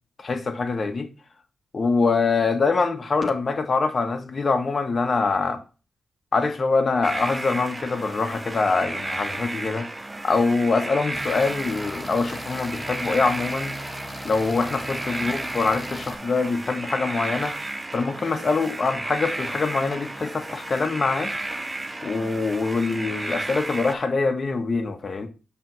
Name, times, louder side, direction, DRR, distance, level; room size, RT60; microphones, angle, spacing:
voice 1, 0.2-1.1 1.7-5.6 6.3-9.9 10.2-13.8 14.2-17.5 17.9-21.3 22.0-25.3, left 4 dB, 50° left, 1.1 m, -24 dB
sound 1, 7.0-24.0, right 2 dB, 25° right, 0.6 m, -33 dB
sound 2, 11.1-16.1, equal, 5° left, 1.0 m, -38 dB
6.5 x 3.4 x 6.0 m
supercardioid pair, 45°, 0 cm